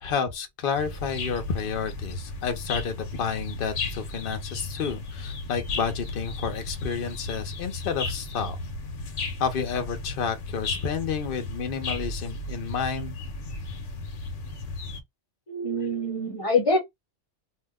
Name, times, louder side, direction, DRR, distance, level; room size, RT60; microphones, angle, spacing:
voice 1, 0.0-8.6 9.4-13.2, left 6 dB, 55° left, 0.9 m, -30 dB
sound 1, 0.7-15.0, left 3 dB, 90° left, 1.1 m, -35 dB
voice 2, 15.5-16.8, left 2 dB, 30° left, 1.1 m, -25 dB
2.7 x 2.1 x 3.5 m
omnidirectional pair, 1.2 m